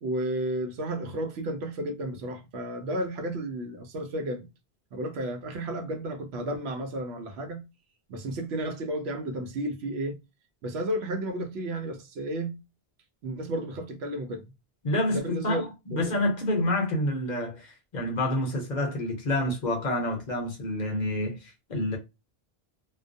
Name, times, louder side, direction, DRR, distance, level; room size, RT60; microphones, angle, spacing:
voice 1, 0.0-4.5 4.9-7.6 8.1-10.2 10.6-12.6 13.2-14.5 15.1-15.6 15.9-16.0, right 1 dB, 85° right, 0.9 m, -32 dB
voice 2, 14.8-22.0, left 1 dB, 50° left, 0.7 m, -28 dB
2.3 x 2.2 x 2.5 m
omnidirectional pair, 1.1 m